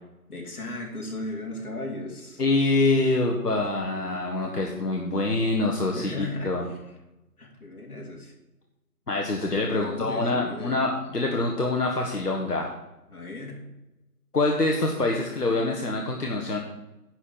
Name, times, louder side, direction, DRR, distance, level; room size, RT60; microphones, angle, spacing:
voice 1, 0.3-2.4 3.8-4.3 5.9-6.8 7.4-8.3 9.7-10.8 13.1-13.6, left 2 dB, 70° left, 0 dB, 3.0 m, -36 dB
voice 2, 2.4-6.6 9.1-12.7 14.3-16.6, left 2 dB, 85° left, 0 dB, 1.5 m, -25 dB
10.5 x 4.5 x 7.1 m, 0.99 s
figure-of-eight pair, 155°, 46 cm